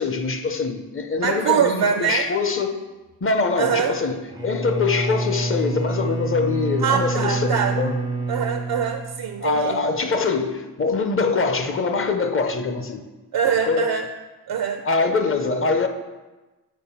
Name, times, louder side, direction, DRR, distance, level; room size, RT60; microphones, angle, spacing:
voice 1, 0.0-2.8 3.2-8.0 9.4-13.0 13.6-13.9 14.8-15.9, left 4 dB, 35° left, 6 dB, 0.6 m, -23 dB
voice 2, 1.1-2.3 3.6-4.0 6.8-7.8 8.3-9.8 13.3-14.1 14.5-14.8, right 7 dB, 70° right, 7 dB, 0.5 m, -23 dB
Bowed string instrument, 4.3-9.6, right 3 dB, 10° right, 0.4 m, -27 dB
7.2 x 4.6 x 5.6 m, 1.2 s
wide cardioid pair, 170°, 39 cm